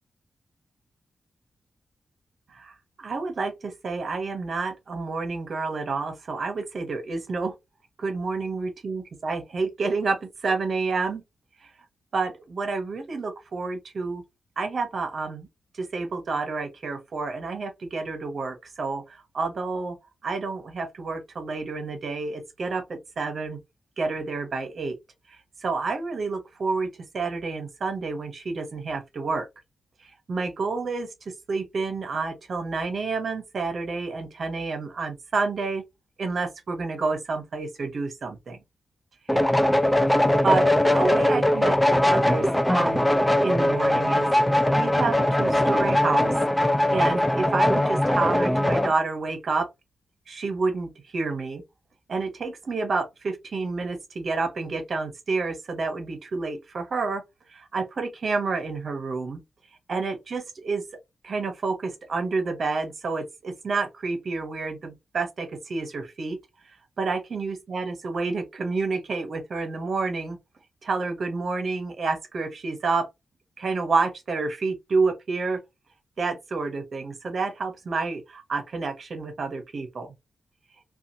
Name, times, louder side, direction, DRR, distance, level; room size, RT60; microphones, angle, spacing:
voice 1, 2.5-7.5 8.0-11.2 12.1-14.2 14.6-15.5 15.8-20.0 20.2-23.6 24.0-25.0 25.3-29.5 30.0-31.1 31.5-35.8 36.2-38.6 39.3-39.5 40.4-43.0 43.4-49.7 50.3-51.6 52.1-57.2 57.5-59.4 59.9-60.8 61.2-66.4 67.0-70.4 70.8-73.1 73.6-75.6 76.2-80.1, right 4 dB, 55° right, 0.7 m, -29 dB
sound 1, 39.3-48.9, left 1 dB, 5° left, 0.4 m, -21 dB
2.7 x 2.3 x 2.6 m
wide cardioid pair, 115°, 0 cm